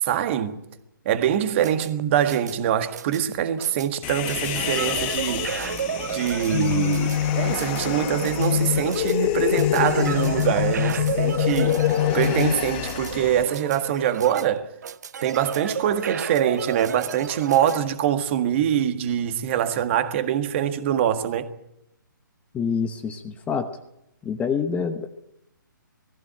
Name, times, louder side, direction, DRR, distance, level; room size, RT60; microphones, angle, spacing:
voice 1, 0.0-0.6 1.1-5.5 6.1-11.8 12.1-14.7 15.2-21.5, right 10 dB, 35° right, 1.7 m, -24 dB
sound 1, 1.3-17.8, right 8 dB, 55° right, 0.8 m, -33 dB
Human voice, 4.0-13.4, left 11 dB, 30° left, 1.4 m, -28 dB
sound 2, 6.3-13.2, left 10 dB, 50° left, 1.0 m, -26 dB
voice 2, 22.5-23.7 24.2-25.1, left 6 dB, 10° left, 1.0 m, -26 dB
19.5 x 15.0 x 9.0 m
figure-of-eight pair, 140°, 11 cm